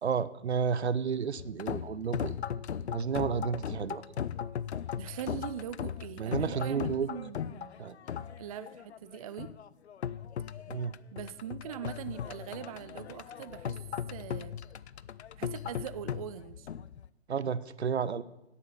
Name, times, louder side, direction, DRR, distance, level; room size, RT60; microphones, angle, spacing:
voice 1, 0.0-2.4 2.9-4.0 6.2-7.1 7.8-8.0 10.7-10.9 17.3-18.2, right 6 dB, 70° right, 17 dB, 0.7 m, -31 dB
sound 1, 1.4-17.1, left 8 dB, 70° left, 0.5 m, -38 dB
voice 2, 5.0-7.7 8.4-9.5 11.1-13.8 14.1-14.6 15.3-16.7, right 10 dB, 35° right, 14 dB, 0.4 m, -41 dB
11.0 x 8.5 x 6.7 m, 0.93 s
figure-of-eight pair, 115°, 34 cm